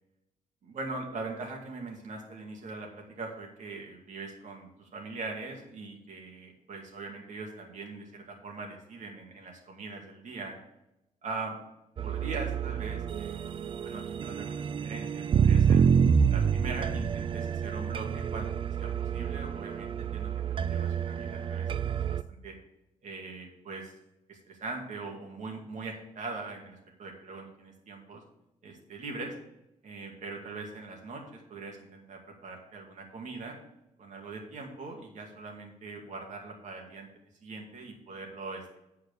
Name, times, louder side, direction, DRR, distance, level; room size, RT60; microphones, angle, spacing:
voice 1, 0.6-10.6 11.2-11.6 12.0-15.8 16.3-18.5 18.8-20.3 20.6-22.6 23.0-23.9 24.3-28.2 28.6-29.3 29.8-33.6 34.0-37.1 37.4-38.8, right 3 dB, 65° right, 1 dB, 2.2 m, -41 dB
sound 1, 12.0-22.2, right 7 dB, 40° right, 0.3 m, -28 dB
9.0 x 4.7 x 6.6 m, 0.89 s
wide cardioid pair, 145°, 14 cm